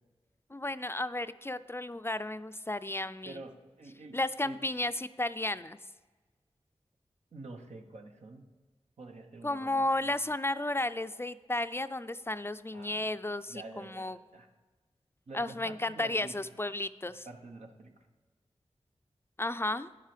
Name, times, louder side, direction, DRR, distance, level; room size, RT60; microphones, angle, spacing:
voice 1, 0.5-3.4 4.1-5.8 9.4-14.2 15.3-17.3 19.4-19.9, left 2 dB, 20° left, 13 dB, 0.4 m, -33 dB
voice 2, 3.2-4.6 7.3-8.4 9.0-9.8 12.7-13.1 13.5-14.5 15.3-16.4 17.2-18.1, right 2 dB, 90° right, 3 dB, 1.0 m, -48 dB
10.0 x 7.4 x 5.0 m, 1.3 s
wide cardioid pair, 50°, 11 cm